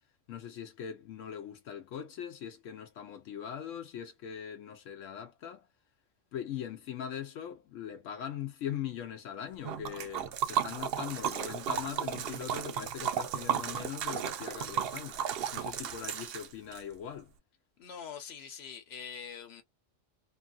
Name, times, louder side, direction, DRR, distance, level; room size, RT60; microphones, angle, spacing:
voice 1, 0.3-5.7 6.3-15.2 15.5-17.3, left 9 dB, 80° left, 1.0 m, -41 dB
Liquid, 9.6-16.8, right 8 dB, 65° right, 0.7 m, -34 dB
voice 2, 17.8-19.6, left 7 dB, 60° left, 1.1 m, -44 dB
2.8 x 2.7 x 2.4 m
omnidirectional pair, 1.3 m